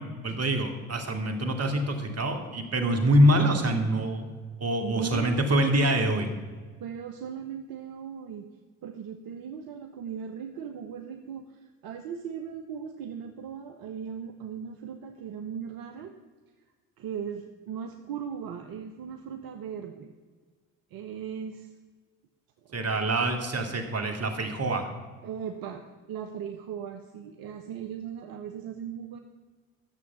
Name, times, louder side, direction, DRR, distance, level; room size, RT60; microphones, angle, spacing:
voice 1, 0.0-4.3 4.6-6.3 22.7-24.9, right 1 dB, 40° right, 5 dB, 2.3 m, -25 dB
voice 2, 4.8-5.4 6.8-8.5 8.8-16.1 17.0-20.1 20.9-21.7 22.6-22.9 25.2-25.8 26.1-29.2, right 7 dB, 65° right, 6 dB, 1.0 m, -38 dB
12.0 x 7.2 x 7.2 m, 1.5 s
hypercardioid pair, 55°, 39 cm